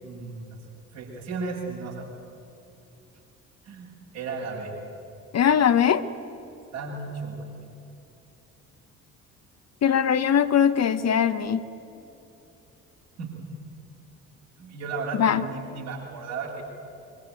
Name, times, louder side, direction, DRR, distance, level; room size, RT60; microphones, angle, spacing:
voice 1, 0.0-0.6 0.9-2.1 3.6-4.7 6.7-7.4 13.2-13.5 14.6-16.6, right 4 dB, 70° right, -3 dB, 6.9 m, -34 dB
voice 2, 5.3-6.0 9.8-11.6 15.2-15.4, left 8 dB, 40° left, 11 dB, 1.1 m, -21 dB
24.0 x 23.5 x 9.2 m, 2.8 s
figure-of-eight pair, 50°, 42 cm